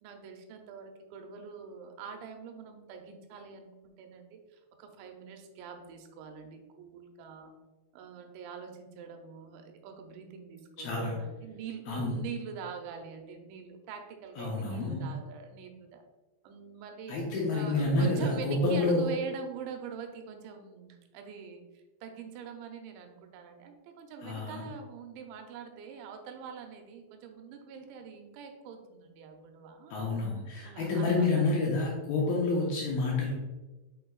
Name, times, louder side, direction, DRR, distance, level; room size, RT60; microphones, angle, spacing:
voice 1, 0.0-7.5 7.9-16.0 16.4-17.2 17.5-30.0 30.6-31.5, right 6 dB, 85° right, 5 dB, 2.9 m, -44 dB
voice 2, 10.8-11.2 11.9-12.1 14.4-15.1 17.1-19.1 24.2-24.6 29.9-33.3, left 2 dB, 75° left, -3 dB, 2.4 m, -29 dB
6.6 x 6.2 x 2.3 m, 1.2 s
omnidirectional pair, 5.2 m